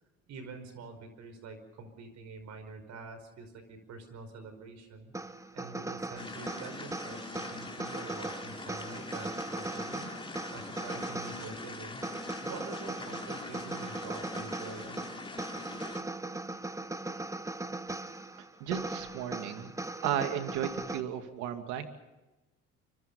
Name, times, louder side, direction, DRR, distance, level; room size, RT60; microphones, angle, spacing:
voice 1, 0.3-5.1 5.5-10.1 10.5-12.1 12.5-15.0, right 4 dB, 70° right, 9 dB, 5.2 m, -46 dB
sound 1, 5.1-21.0, right 2 dB, 10° right, 1.4 m, -39 dB
sound 2, 6.2-16.0, left 3 dB, 20° left, 3.6 m, -43 dB
voice 2, 18.6-19.7 20.0-21.9, right 10 dB, 90° right, 7 dB, 2.5 m, -34 dB
25.0 x 24.5 x 5.5 m, 1.1 s
supercardioid pair, 80°, 29 cm